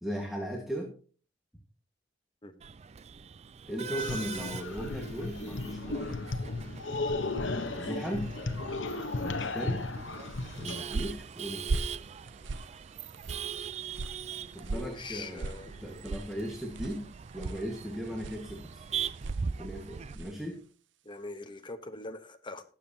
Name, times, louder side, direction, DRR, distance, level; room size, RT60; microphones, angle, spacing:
voice 1, 0.0-0.9 3.7-6.4 7.4-8.3 9.2-9.8 10.6-11.8 14.5-15.5 15.8-17.0 17.3-18.8 19.6-20.6, equal, ahead, 1 dB, 1.5 m, -37 dB
Male speech man speaking / Laughter / Chatter, 2.6-20.2, right 6 dB, 35° right, 0.4 m, -41 dB
sound 1, 4.0-10.8, left 3 dB, 75° left, 1.0 m, -35 dB
sound 2, 10.4-20.5, right 3 dB, 70° right, 0.7 m, -40 dB
voice 2, 14.7-15.8 21.0-22.6, left 2 dB, 25° left, 7 dB, 1.0 m, -42 dB
19.0 x 7.6 x 2.8 m, 0.41 s
head